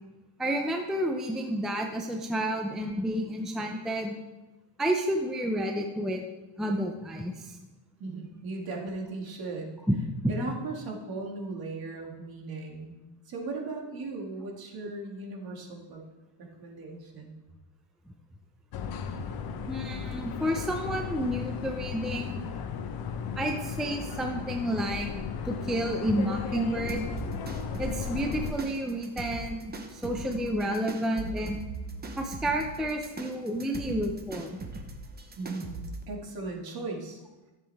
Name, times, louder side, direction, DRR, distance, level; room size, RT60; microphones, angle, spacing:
voice 1, 0.4-4.2 4.8-6.2 6.6-7.6 9.9-10.0 10.2-10.3 19.7-22.4 23.4-25.1 25.4-27.1 27.8-31.6 32.2-34.6, equal, ahead, 2 dB, 0.5 m, -30 dB
voice 2, 8.0-9.7 10.3-16.0 16.6-17.3 35.4-35.8 36.1-37.2, right 3 dB, 45° right, 0 dB, 2.2 m, -37 dB
sound 1, 18.7-28.5, left 6 dB, 45° left, 1.0 m, -35 dB
sound 2, 26.9-36.0, right 3 dB, 20° right, 0.9 m, -40 dB
14.0 x 7.5 x 3.5 m, 1.1 s
cardioid pair, 140°, 49 cm